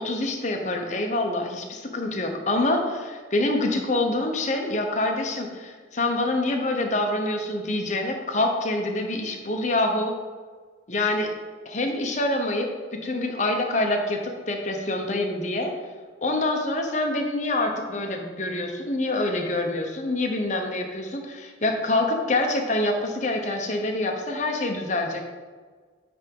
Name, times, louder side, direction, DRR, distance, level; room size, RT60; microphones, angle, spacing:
voice 1, 0.0-10.1 10.9-11.3 11.6-12.7 13.0-14.2 14.5-15.7 16.2-25.2, left 2 dB, 40° left, 3 dB, 0.9 m, -26 dB
8.8 x 3.5 x 5.4 m, 1.5 s
head